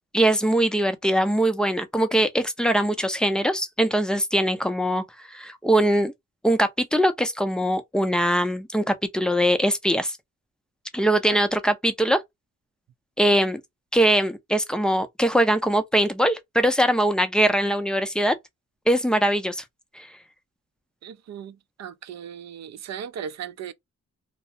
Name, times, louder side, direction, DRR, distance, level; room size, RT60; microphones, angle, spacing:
voice 1, 0.1-6.1 6.4-10.2 10.9-12.2 13.2-13.6 13.9-18.3 18.9-19.6 20.0-20.1, right 1 dB, 5° left, 0.4 m, -22 dB
voice 2, 21.0-23.7, right 8 dB, 65° right, 0.4 m, -37 dB
2.3 x 2.0 x 2.6 m
cardioid pair, 95°, 29 cm